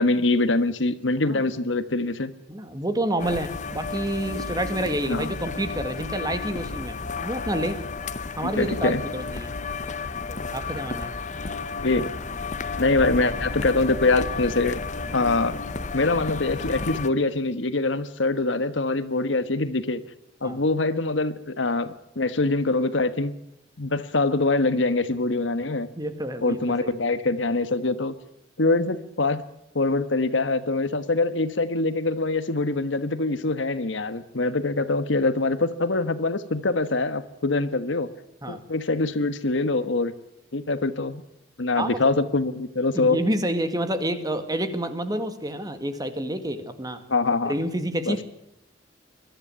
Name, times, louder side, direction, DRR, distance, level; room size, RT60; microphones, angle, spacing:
voice 1, 0.0-2.3 5.1-5.3 8.4-9.0 11.8-12.1 12.8-14.8 15.1-15.6 15.9-20.0 20.4-23.3 23.8-25.9 26.4-28.1 28.6-29.4 29.7-38.1 38.5-40.1 40.5-41.2 41.6-43.2 47.1-47.5 48.1-48.2, left 3 dB, 75° left, 12 dB, 1.3 m, -24 dB
voice 2, 2.5-7.8 8.4-9.5 10.5-11.1 20.4-20.6 26.0-26.9 38.4-38.6 41.8-42.0 42.9-47.0 47.5-48.2, right 1 dB, 20° right, 9 dB, 1.9 m, -28 dB
sound 1, 3.2-17.1, left 4 dB, 40° left, 0.9 m, -32 dB
21.5 x 13.0 x 9.6 m, 0.83 s
head